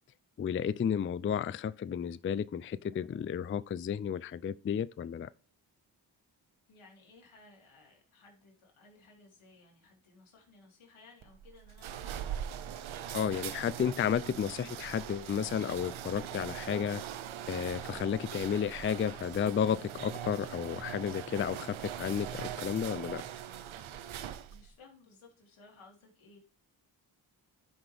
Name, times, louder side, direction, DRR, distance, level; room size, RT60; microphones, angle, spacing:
voice 1, 0.4-5.3 13.1-17.0 17.5-23.2, left 8 dB, 30° left, 0.4 m, -32 dB
voice 2, 6.7-12.4 24.5-26.4, left 3 dB, 85° left, 3.0 m, -58 dB
sound 1, 11.2-24.7, right 10 dB, 80° right, 0.8 m, -41 dB
11.0 x 6.0 x 3.4 m
cardioid pair, 45°, 48 cm